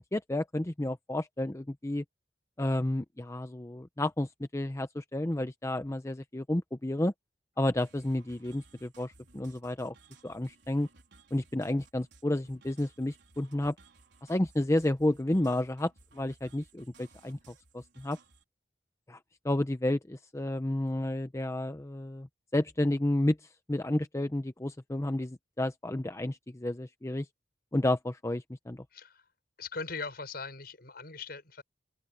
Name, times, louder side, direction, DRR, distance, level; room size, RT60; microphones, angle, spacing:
voice 1, 0.0-2.0 2.6-7.1 7.6-9.9 10.2-10.9 11.3-13.7 14.3-18.2 19.1-19.2 19.4-22.3 22.5-23.4 23.7-27.3 27.7-28.8, left 1 dB, 15° left, 0.7 m, -31 dB
sound 1, 7.8-18.4, right 3 dB, 85° right, 4.1 m, -60 dB
voice 2, 28.9-29.2 29.6-31.6, left 4 dB, 60° left, 6.6 m, -40 dB
head